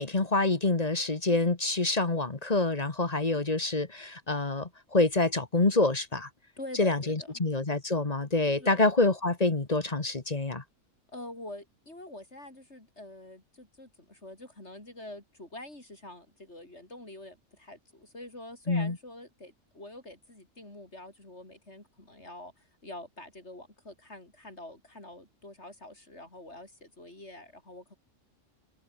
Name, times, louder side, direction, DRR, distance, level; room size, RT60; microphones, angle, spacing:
voice 1, 0.0-6.3 6.8-10.6 18.7-19.0, left 2 dB, 30° left, 1.6 m, -27 dB
voice 2, 6.6-7.3 8.6-8.8 11.1-27.9, left 1 dB, 55° left, 7.1 m, -46 dB
omnidirectional pair, 1.4 m